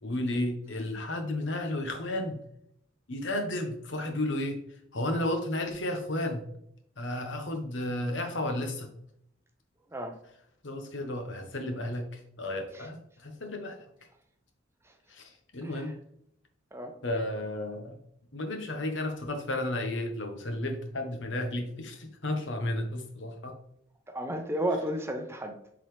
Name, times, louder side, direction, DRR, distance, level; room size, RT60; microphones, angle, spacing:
voice 1, 0.0-2.4 3.1-4.6 4.9-6.4 7.0-8.9 10.6-13.8 15.1-15.9 17.0-18.0 18.3-23.6, left 1 dB, 70° left, 1.2 m, -33 dB
voice 2, 24.1-25.6, right 1 dB, 15° right, 0.6 m, -33 dB
7.3 x 4.0 x 3.3 m
head